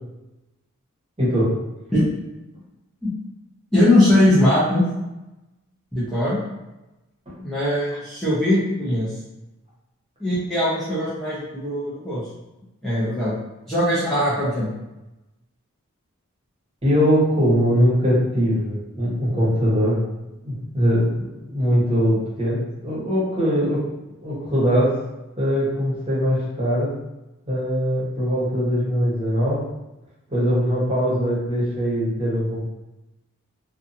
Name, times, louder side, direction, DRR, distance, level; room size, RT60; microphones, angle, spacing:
voice 1, 1.2-1.5 7.3-7.4 16.8-20.0 20.4-23.8 24.2-24.9 25.4-26.9 27.5-29.6 30.3-32.6, equal, 25° right, -8 dB, 1.0 m, -21 dB
voice 2, 3.7-4.8 5.9-6.4 7.4-9.1 10.2-12.2 12.8-13.3 13.7-14.7, left 1 dB, ahead, -12 dB, 0.5 m, -20 dB
2.7 x 2.3 x 2.6 m, 0.99 s
head